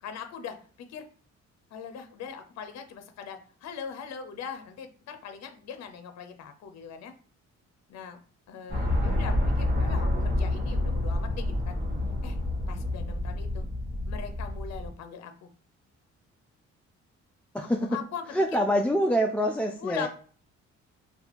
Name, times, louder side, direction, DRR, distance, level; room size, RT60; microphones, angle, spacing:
voice 1, 0.0-1.1 1.7-7.1 7.9-8.2 8.5-11.8 12.2-12.4 12.7-13.6 14.0-15.5 17.9-18.4 19.8-20.1, left 7 dB, 60° left, 7 dB, 0.6 m, -40 dB
sound 1, 8.7-14.9, left 1 dB, 30° right, 1.6 m, -28 dB
voice 2, 17.5-18.0 18.3-20.1, equal, 5° left, 0 dB, 0.3 m, -25 dB
2.8 x 2.3 x 4.1 m, 0.44 s
cardioid pair, 90°, 30 cm